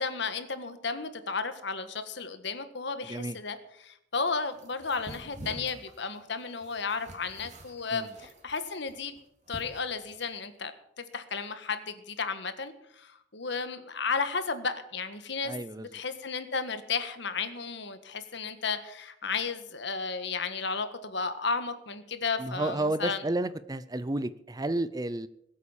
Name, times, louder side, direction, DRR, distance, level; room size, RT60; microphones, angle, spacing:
voice 1, 0.0-9.2 9.5-23.2, left 4 dB, 65° left, 10 dB, 1.6 m, -33 dB
sound 1, 4.5-10.4, right 1 dB, 40° right, 2.6 m, -48 dB
voice 2, 15.4-15.9 22.4-25.3, right 1 dB, 20° right, 15 dB, 0.6 m, -31 dB
20.0 x 8.6 x 7.3 m, 0.75 s
head